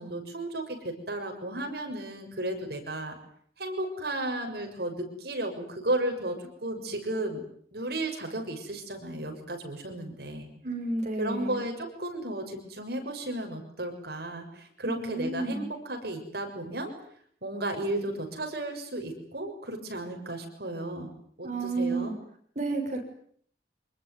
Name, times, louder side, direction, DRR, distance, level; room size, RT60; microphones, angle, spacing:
voice 1, 0.0-3.2 3.6-7.4 7.7-10.5 11.2-16.9 17.4-21.1 21.4-22.1, right 1 dB, 60° right, 4 dB, 6.6 m, -34 dB
voice 2, 10.6-11.6 14.8-15.7 21.4-22.1 22.6-23.0, right 2 dB, 40° right, 3 dB, 6.8 m, -31 dB
26.0 x 21.0 x 9.5 m, 0.63 s
head